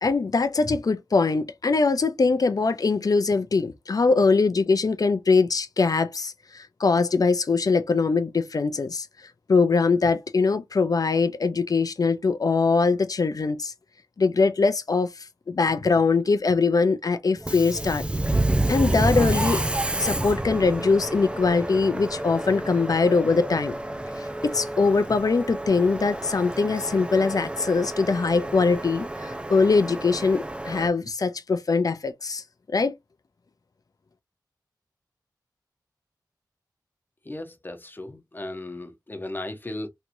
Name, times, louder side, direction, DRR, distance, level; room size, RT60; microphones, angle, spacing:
voice 1, 0.0-9.1 9.5-13.7 14.2-18.0 18.7-19.6 20.0-23.8 24.2-32.4 32.7-32.9, left 4 dB, 55° left, 0.6 m, -22 dB
Subway metro underground, 17.4-30.9, right 1 dB, 15° right, 0.5 m, -29 dB
voice 2, 37.2-39.9, left 1 dB, 25° left, 1.0 m, -36 dB
3.3 x 3.0 x 2.6 m
wide cardioid pair, 65°, 8 cm